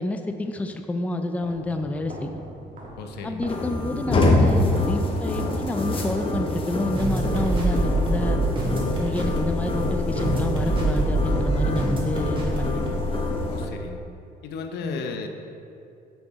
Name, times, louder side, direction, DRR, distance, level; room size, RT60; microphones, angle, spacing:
voice 1, 0.0-2.3 3.2-8.4 8.9-12.8 14.8-15.0, left 2 dB, 10° left, 6 dB, 0.4 m, -28 dB
sound 1, 1.3-8.7, right 1 dB, 50° right, 1.5 m, -41 dB
voice 2, 3.0-3.4 13.5-14.0 14.4-15.3, left 5 dB, 75° left, 5 dB, 0.7 m, -34 dB
sound 2, 3.5-13.7, left 2 dB, 30° left, 0.9 m, -26 dB
sound 3, 7.0-13.3, right 2 dB, 30° right, 1.6 m, -25 dB
8.4 x 5.8 x 3.6 m, 2.5 s
cardioid pair, 110°, 17 cm